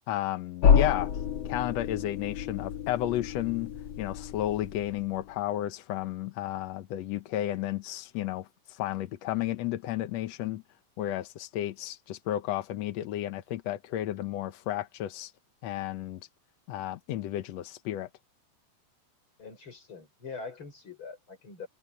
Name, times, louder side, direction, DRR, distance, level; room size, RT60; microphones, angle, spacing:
voice 1, 0.1-1.1 1.4-3.7 4.0-10.6 11.0-15.3 15.6-16.2 16.7-18.1, left 13 dB, 75° left, 1.6 m, -32 dB
sound 1, 0.6-5.3, left 7 dB, 50° left, 2.3 m, -28 dB
voice 2, 19.4-21.7, left 4 dB, 35° left, 6.2 m, -43 dB
omnidirectional pair, 4.1 m